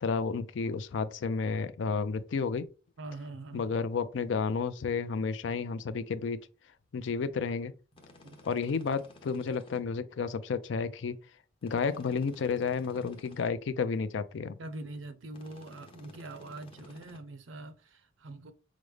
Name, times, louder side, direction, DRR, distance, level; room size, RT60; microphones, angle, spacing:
voice 1, 0.0-2.7 3.5-6.4 6.9-7.7 8.4-11.2 11.6-14.5, left 5 dB, 75° left, 0.4 m, -31 dB
voice 2, 3.0-3.7 8.2-8.4 14.6-18.5, right 2 dB, 90° right, 0.6 m, -43 dB
sound 1, 7.9-9.8 11.6-13.5 15.3-17.2, left 2 dB, 30° left, 0.7 m, -55 dB
4.9 x 2.1 x 3.2 m
head